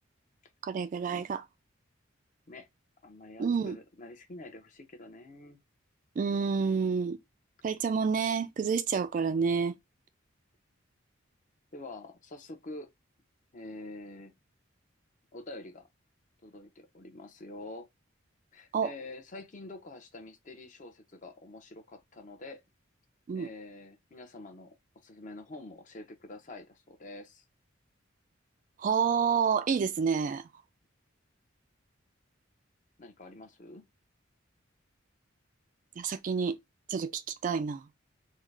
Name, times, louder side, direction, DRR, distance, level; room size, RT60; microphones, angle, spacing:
voice 1, 0.6-1.4 3.4-3.8 6.2-7.2 7.6-9.8 18.7-18.9 23.3-23.5 28.8-30.5 36.0-36.6 36.9-37.9, right 6 dB, 40° right, 0.3 m, -29 dB
voice 2, 3.0-5.6 11.7-12.9 13.5-14.3 15.3-15.9 16.4-17.9 18.5-22.6 23.3-27.4 33.0-33.9, left 2 dB, 40° left, 0.7 m, -46 dB
3.7 x 2.1 x 3.2 m
head